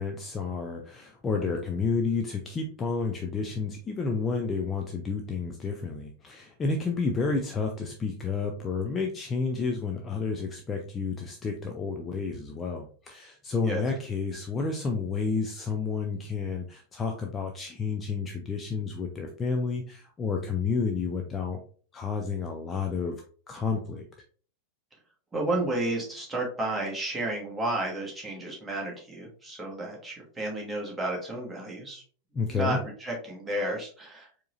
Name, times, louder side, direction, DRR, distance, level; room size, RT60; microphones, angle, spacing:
voice 1, 0.0-21.6 21.9-24.0 32.3-32.8, left 4 dB, 20° left, 2 dB, 0.5 m, -30 dB
voice 2, 25.3-32.0 32.4-34.3, right 1 dB, 10° right, -2 dB, 1.4 m, -32 dB
4.6 x 3.0 x 2.5 m, 0.42 s
figure-of-eight pair, 90°, 0 cm